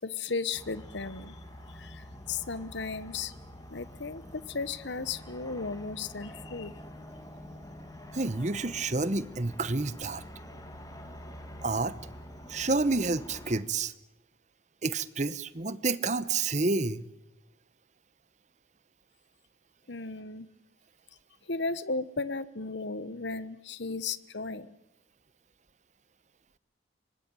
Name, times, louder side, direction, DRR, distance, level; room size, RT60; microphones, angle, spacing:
voice 1, 0.0-1.4 1.7-3.3 3.7-6.7 19.9-20.5 21.5-24.7, left 4 dB, 65° left, 16 dB, 1.1 m, -35 dB
sound 1, 0.5-13.6, equal, 20° left, 2.6 m, -47 dB
voice 2, 8.1-10.2 11.6-11.9 12.5-13.9 14.8-17.0, right 3 dB, 35° right, 16 dB, 1.0 m, -29 dB
24.5 x 20.0 x 9.0 m, 0.94 s
head